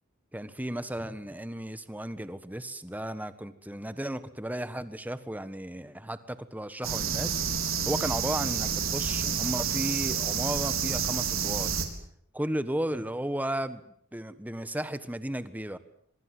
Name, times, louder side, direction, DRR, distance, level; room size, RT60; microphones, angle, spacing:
voice 1, 0.3-7.4 7.9-11.8 12.3-13.8 14.1-15.8, right 1 dB, 10° right, 13 dB, 1.4 m, -34 dB
sound 1, 6.8-11.9, right 7 dB, 90° right, 4.2 m, -29 dB
25.0 x 24.0 x 7.8 m, 0.66 s
head